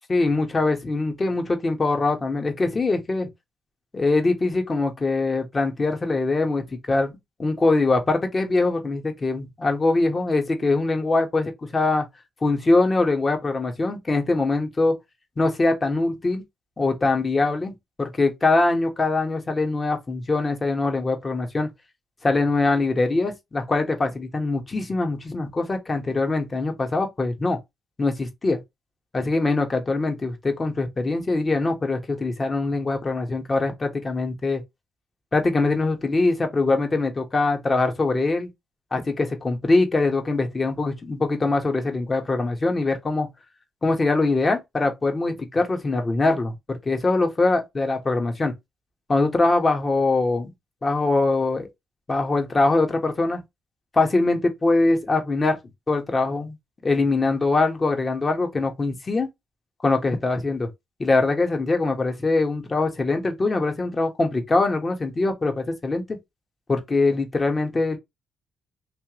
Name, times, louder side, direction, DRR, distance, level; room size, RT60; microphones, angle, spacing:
voice 1, 0.1-3.3 3.9-7.1 7.4-12.1 12.4-14.9 15.4-16.4 16.8-17.7 18.0-21.7 22.2-27.6 28.0-28.6 29.1-34.6 35.3-38.5 38.9-43.3 43.8-48.5 49.1-50.5 50.8-51.7 52.1-53.4 53.9-55.6 55.9-56.6 56.8-59.3 59.8-60.7 61.0-66.0 66.7-68.0, left 3 dB, 35° left, 1.3 m, -23 dB
3.3 x 2.8 x 3.0 m
supercardioid pair, 60°, 0 cm